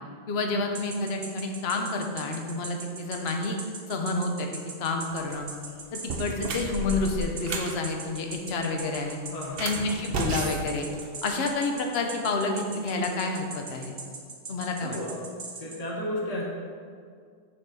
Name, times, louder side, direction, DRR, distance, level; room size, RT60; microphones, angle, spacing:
voice 1, 0.3-3.6 3.9-4.5 4.8-5.5 5.9-9.2 9.6-10.9 11.2-13.9 14.5-15.0, left 3 dB, 70° left, 3 dB, 0.9 m, -29 dB
sound 1, 0.7-15.8, right 4 dB, 90° right, 1.2 m, -39 dB
sound 2, 5.2-5.4 6.0-7.8 9.4-11.5, right 3 dB, 65° right, 0.9 m, -33 dB
voice 2, 9.3-9.6 14.8-15.2 15.6-16.4, left 1 dB, 35° left, -3 dB, 1.1 m, -33 dB
6.9 x 3.6 x 5.2 m, 2.1 s
omnidirectional pair, 1.1 m